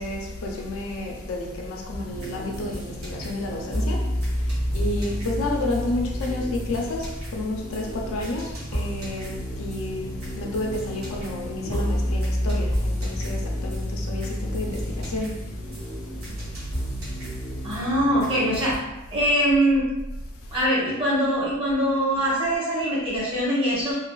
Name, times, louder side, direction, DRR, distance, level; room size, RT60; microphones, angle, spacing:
voice 1, 0.0-17.8 19.1-19.3 20.3-20.7, left 2 dB, 70° left, 0 dB, 0.4 m, -31 dB
sound 1, 1.9-18.8, equal, 90° right, 0.8 m, -30 dB
voice 2, 17.6-18.7 19.1-19.8 20.5-23.9, equal, 25° right, -8 dB, 0.9 m, -22 dB
2.4 x 2.2 x 2.2 m, 1.0 s
head